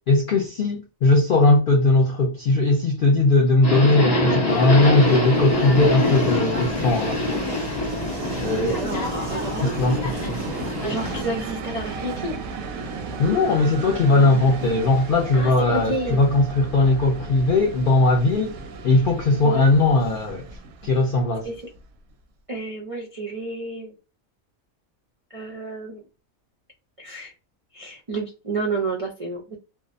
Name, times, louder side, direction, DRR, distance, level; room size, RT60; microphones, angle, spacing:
voice 1, 0.1-7.2 8.4-8.7 9.6-10.4 13.2-18.5 18.8-20.4 20.8-21.5, left 2 dB, 70° left, 0.5 m, -19 dB
Subway metro underground, 3.6-11.2, left 1 dB, 35° left, 0.9 m, -25 dB
Train, 4.2-22.0, right 3 dB, 85° right, 1.0 m, -35 dB
voice 2, 8.6-9.8 10.8-12.3 15.3-16.2 19.4-19.7 21.4-21.6 22.5-23.9 25.3-26.0 27.0-27.3 27.7-29.6, right 2 dB, 55° right, 0.3 m, -30 dB
2.7 x 2.0 x 2.4 m
omnidirectional pair, 1.4 m